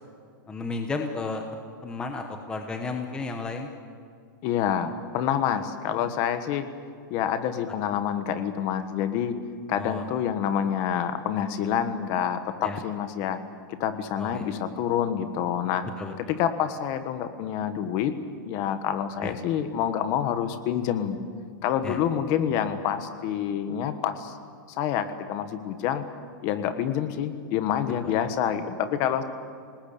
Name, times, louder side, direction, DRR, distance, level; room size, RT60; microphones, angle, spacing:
voice 1, 0.5-1.4 1.8-3.7 9.8-10.0 12.6-12.8 14.2-14.5 16.0-16.1 19.2-19.3 21.8-22.0, left 3 dB, 5° left, 4 dB, 1.0 m, -32 dB
voice 2, 4.4-6.7 7.1-9.4 9.7-13.4 13.8-15.8 16.2-18.1 18.4-21.2 21.6-24.4 24.8-26.0 26.4-29.2, left 9 dB, 30° left, 10 dB, 1.3 m, -27 dB
27.5 x 19.5 x 8.6 m, 2.3 s
supercardioid pair, 175°, 12 cm